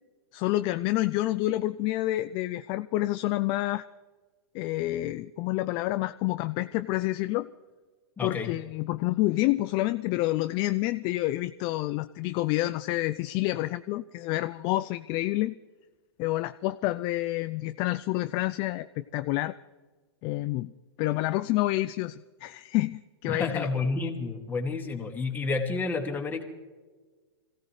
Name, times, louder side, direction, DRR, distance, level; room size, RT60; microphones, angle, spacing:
voice 1, 0.3-3.9 4.5-7.5 8.2-15.5 16.2-19.5 20.2-20.7 21.0-23.7, left 17 dB, 35° left, 12 dB, 0.4 m, -28 dB
voice 2, 8.2-8.5 23.2-26.4, left 4 dB, 15° left, 1 dB, 2.4 m, -30 dB
25.0 x 16.5 x 3.3 m, 1.4 s
hypercardioid pair, 115°, 14 cm